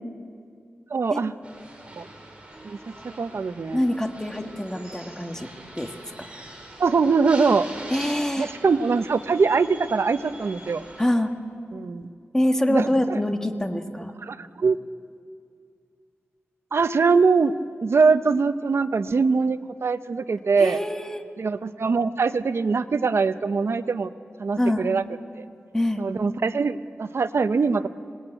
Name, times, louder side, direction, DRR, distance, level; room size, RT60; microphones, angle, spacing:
voice 1, 0.9-1.3 2.0-2.1 2.6-2.8 3.2-3.8 6.8-7.7 8.4-10.8 11.7-12.0 12.7-13.2 14.2-14.8 16.7-17.5 17.8-20.8 21.4-24.1 24.4-25.0 25.3-25.4 26.0-27.9, right 4 dB, 70° right, 11 dB, 0.8 m, -22 dB
sound 1, 1.4-11.1, right 1 dB, 25° right, 5.6 m, -43 dB
voice 2, 3.7-5.5 5.7-5.9 6.2-6.3 7.9-8.5 11.0-11.3 12.3-14.1 20.6-21.2 24.6-24.9 25.7-26.0, left 1 dB, 10° left, 5 dB, 1.6 m, -25 dB
25.5 x 19.5 x 9.0 m, 2.3 s
wide cardioid pair, 100°, 5 cm